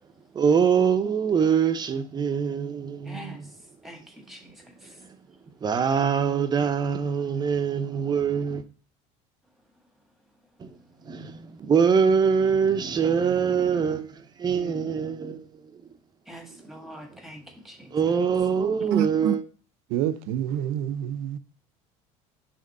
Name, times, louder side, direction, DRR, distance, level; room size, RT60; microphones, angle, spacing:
voice 1, 0.3-3.4 5.6-8.6 10.6-10.7 11.1-14.0 14.4-15.4 17.9-19.4, right 6 dB, 30° right, 0.7 m, -23 dB
voice 2, 3.0-3.4 3.8-5.0 16.3-18.2, right 1 dB, ahead, 1.4 m, -44 dB
voice 3, 18.9-19.3 19.9-21.4, right 10 dB, 80° right, 0.6 m, -27 dB
5.2 x 3.5 x 5.3 m
supercardioid pair, 115°, 15 cm